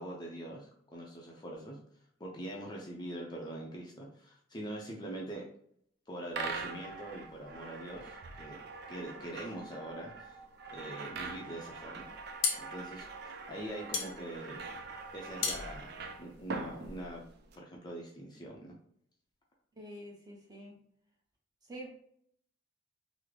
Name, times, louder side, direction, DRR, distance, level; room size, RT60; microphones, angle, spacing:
voice 1, 0.0-1.8 2.2-5.4 6.1-8.6 8.9-10.4 10.7-12.1 12.6-14.6 15.1-17.2 17.5-18.7, right 1 dB, 20° left, -2 dB, 0.5 m, -43 dB
Ball in hole, 6.3-17.6, right 4 dB, 55° right, 0.4 m, -43 dB
sound 1, 12.1-17.0, left 5 dB, 65° left, 0.7 m, -37 dB
voice 2, 19.8-20.8 21.7-22.0, right 1 dB, 20° right, -2 dB, 0.8 m, -47 dB
3.6 x 2.0 x 3.2 m, 0.67 s
head